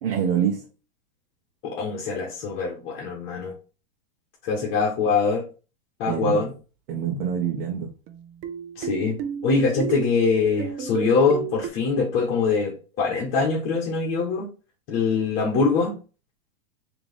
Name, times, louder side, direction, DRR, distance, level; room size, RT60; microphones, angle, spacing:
voice 1, 0.0-0.6 6.1-6.4 6.9-7.9, right 7 dB, 65° right, -1 dB, 1.0 m, -25 dB
voice 2, 1.6-3.5 4.4-5.4 6.0-6.5 8.8-9.2 9.4-14.5 14.9-16.0, left 4 dB, 45° left, -3 dB, 1.3 m, -23 dB
sound 1, 8.1-11.7, right 7 dB, 45° right, 0.6 m, -32 dB
3.6 x 3.0 x 3.4 m, 0.34 s
hypercardioid pair, 120°, 29 cm